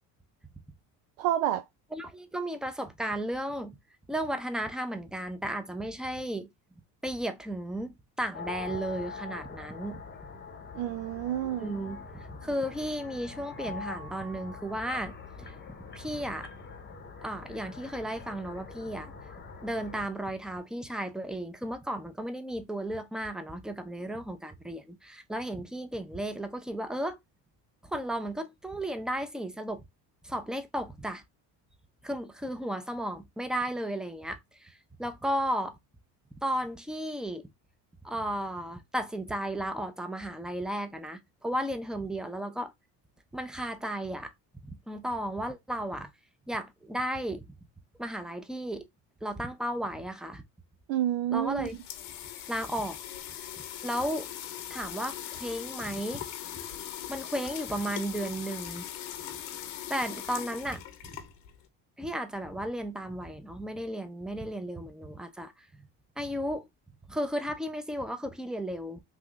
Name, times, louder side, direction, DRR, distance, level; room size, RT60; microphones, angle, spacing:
voice 1, 1.2-1.6 10.7-11.7 50.9-51.7, right 12 dB, 75° right, 0.5 m, -29 dB
voice 2, 1.9-3.8 4.1-6.5 7.0-10.0 11.6-15.5 15.9-16.5 17.2-19.1 19.6-27.2 27.8-29.8 30.2-31.2 32.0-35.8 36.4-37.5 38.0-42.7 43.3-44.3 44.6-46.1 46.5-47.5 48.0-48.9 49.2-50.4 51.3-51.8 52.5-53.0 53.8-54.3 54.7-56.2 57.1-58.9 59.9-61.1 62.0-65.9 66.2-66.7 67.1-69.0, right 1 dB, ahead, 0.6 m, -34 dB
sound 1, 8.3-20.1, left 5 dB, 25° left, 0.9 m, -44 dB
sound 2, 51.4-61.7, left 11 dB, 75° left, 0.9 m, -40 dB
3.4 x 2.5 x 3.1 m
supercardioid pair, 70°, 47 cm